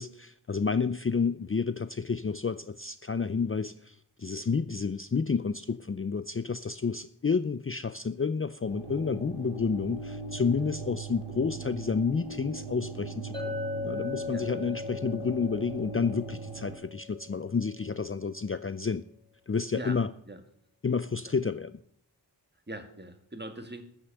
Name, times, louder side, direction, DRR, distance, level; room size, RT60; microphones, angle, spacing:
voice 1, 0.0-13.6 13.8-19.1 19.5-20.1 20.8-21.8, left 5 dB, 30° left, 13 dB, 0.5 m, -30 dB
sound 1, 8.6-16.8, right 4 dB, 80° right, 2.4 m, -40 dB
Chink clink, 13.3-17.8, left 5 dB, 10° left, 3.4 m, -38 dB
voice 2, 22.7-23.8, right 1 dB, 25° right, 7 dB, 2.0 m, -41 dB
14.0 x 6.4 x 9.0 m, 0.64 s
wide cardioid pair, 65°, 41 cm